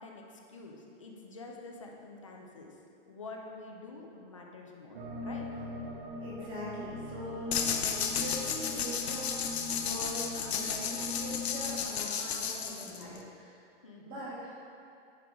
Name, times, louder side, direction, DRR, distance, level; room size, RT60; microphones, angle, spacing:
voice 1, 0.0-2.8 3.1-5.4 13.8-14.3, left 3 dB, 30° left, 0 dB, 0.4 m, -47 dB
sound 1, 4.9-11.8, left 2 dB, 45° right, 1.0 m, -41 dB
voice 2, 6.2-13.6 14.0-14.6, equal, 15° right, -7 dB, 1.1 m, -42 dB
sound 2, 7.5-13.2, left 7 dB, 60° left, 0.7 m, -33 dB
10.0 x 4.6 x 3.5 m, 2.5 s
hypercardioid pair, 170°, 37 cm